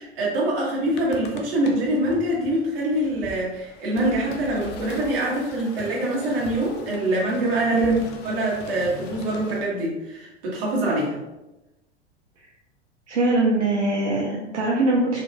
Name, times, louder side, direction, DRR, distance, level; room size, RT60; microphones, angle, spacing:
voice 1, 0.0-7.9 8.2-11.2, right 1 dB, 55° right, -4 dB, 1.4 m, -24 dB
sound 1, 0.8-9.6, left 4 dB, 30° left, 0.5 m, -41 dB
voice 2, 7.7-8.0 13.1-15.2, right 2 dB, 85° right, -3 dB, 0.6 m, -22 dB
4.2 x 2.7 x 2.2 m, 1.0 s
figure-of-eight pair, 85°, 34 cm